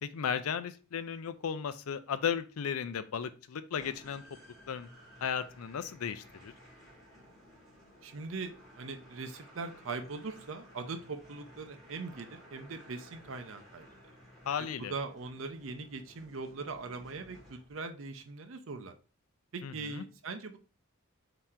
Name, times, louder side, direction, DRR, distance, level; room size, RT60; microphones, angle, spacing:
voice 1, 0.0-4.2 4.7-4.9 5.2-6.5 14.5-14.9 19.6-20.0, left 7 dB, 90° left, 13 dB, 0.4 m, -35 dB
sound 1, 3.7-18.0, equal, ahead, 1.6 m, -56 dB
voice 2, 8.0-13.9 14.6-18.9 19.5-20.6, right 4 dB, 65° right, 7 dB, 0.6 m, -41 dB
3.7 x 2.9 x 4.3 m, 0.36 s
head